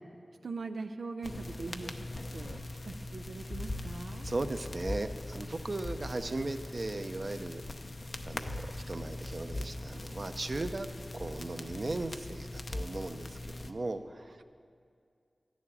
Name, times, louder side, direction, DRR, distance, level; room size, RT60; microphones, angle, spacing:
voice 1, 0.4-2.1 2.3-4.3, right 3 dB, 85° right, 6 dB, 0.4 m, -41 dB
sound 1, 1.2-13.7, left 2 dB, 50° left, 0.7 m, -41 dB
voice 2, 4.2-7.6 8.3-10.9 11.1-14.4, right 2 dB, 50° right, 8 dB, 0.7 m, -37 dB
13.0 x 7.2 x 9.8 m, 2.3 s
wide cardioid pair, 80°, 0 cm